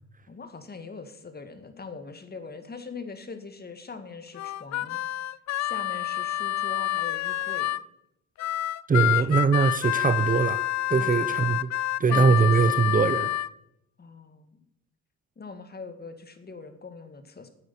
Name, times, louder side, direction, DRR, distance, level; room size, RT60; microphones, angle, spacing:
voice 1, 0.3-5.0 5.6-7.7 9.0-9.5 11.0-11.5 12.1-12.8 14.0-14.7 15.4-17.5, left 4 dB, 30° left, 8 dB, 2.1 m, -42 dB
Harmonica, 4.4-7.8 8.4-13.5, left 15 dB, 60° left, 0.5 m, -28 dB
voice 2, 8.9-10.6 10.9-11.7 12.0-13.3, right 5 dB, 30° right, 13 dB, 0.8 m, -22 dB
9.6 x 8.6 x 9.8 m, 0.82 s
cardioid pair, 90°, 30 cm